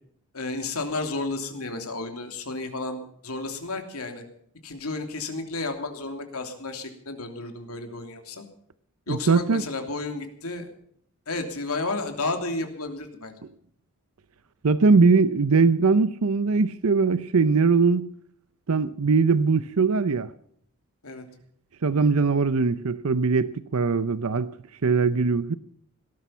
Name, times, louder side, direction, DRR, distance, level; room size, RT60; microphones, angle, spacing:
voice 1, 0.3-4.2 4.6-8.4 9.1-10.7 11.3-13.3 21.0-21.2, left 3 dB, 85° left, 3.0 m, -32 dB
voice 2, 9.1-9.6 14.6-18.1 18.7-20.3 21.8-24.5 24.8-25.5, right 4 dB, 75° right, 0.7 m, -21 dB
18.0 x 12.5 x 5.7 m
head